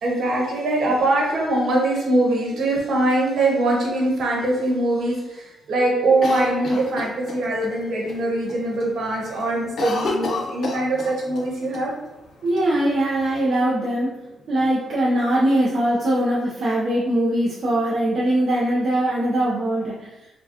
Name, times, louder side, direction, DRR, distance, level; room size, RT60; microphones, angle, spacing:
voice 1, 0.0-11.9, right 2 dB, 65° right, -3 dB, 1.2 m, -22 dB
Cough, 6.2-7.7 8.1-8.2 8.5-8.9 9.2-11.5 11.7-11.8 12.6-13.4, left 3 dB, 55° left, 0.6 m, -29 dB
voice 2, 12.4-20.1, right 1 dB, 50° right, -5 dB, 0.6 m, -21 dB
4.7 x 2.2 x 2.7 m, 0.97 s
cardioid pair, 125°, 0 cm